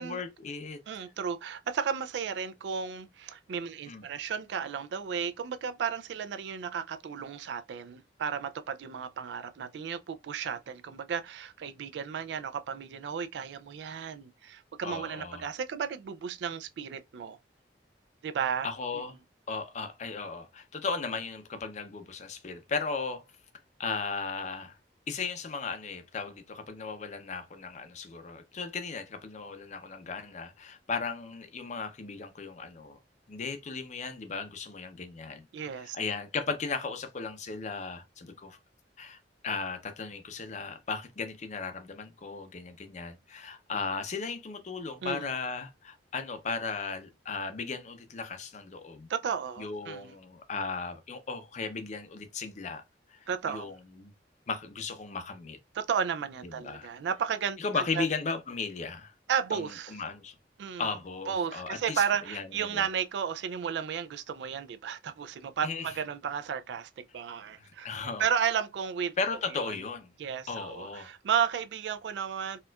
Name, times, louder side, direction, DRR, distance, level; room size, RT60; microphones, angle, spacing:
voice 1, 0.0-0.8 3.9-4.0 14.8-15.5 18.6-19.2 19.5-23.2 23.8-24.8 25.1-33.0 33.3-35.5 35.8-38.6 39.0-39.2 39.4-49.1 49.6-52.8 53.1-54.1 54.5-55.6 56.4-56.9 57.6-59.1 59.5-60.4 60.8-62.9 65.6-65.9 67.6-68.3 69.2-70.1 70.5-71.1, left 4 dB, 40° left, 0.5 m, -36 dB
voice 2, 0.9-17.4 18.2-18.7 35.5-36.0 45.0-45.3 49.1-50.1 53.3-53.7 55.7-58.1 59.3-59.9 60.6-60.9 61.3-69.1 69.5-69.6 70.2-72.6, right 7 dB, 70° right, 0.3 m, -33 dB
4.3 x 2.3 x 2.2 m
head